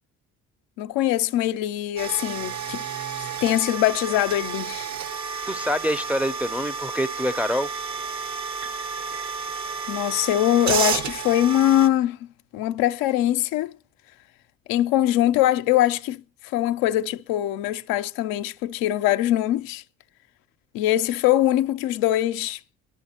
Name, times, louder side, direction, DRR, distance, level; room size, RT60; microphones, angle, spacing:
voice 1, 0.8-2.9 3.4-4.9 5.3-5.4 9.9-12.2 12.5-13.7 14.7-19.8 20.7-22.6, left 13 dB, 80° left, 0.5 m, -22 dB
sound 1, 2.0-11.9, right 5 dB, 55° right, 0.9 m, -31 dB
sound 2, 3.4-5.0 8.6-10.6, right 3 dB, 85° right, 4.8 m, -48 dB
voice 2, 5.5-7.7, equal, 5° right, 0.5 m, -26 dB
24.5 x 11.0 x 2.8 m
supercardioid pair, 65°, 35 cm